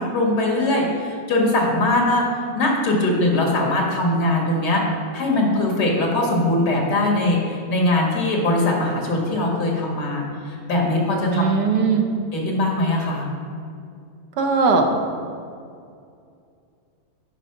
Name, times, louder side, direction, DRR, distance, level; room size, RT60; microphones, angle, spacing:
voice 1, 0.0-2.3 2.5-4.8 5.1-11.5 12.3-13.3, left 2 dB, 85° left, -1 dB, 2.0 m, -21 dB
voice 2, 11.3-12.1 14.4-14.9, right 5 dB, 85° right, 3 dB, 1.5 m, -19 dB
9.1 x 4.7 x 5.7 m, 2.4 s
omnidirectional pair, 1.7 m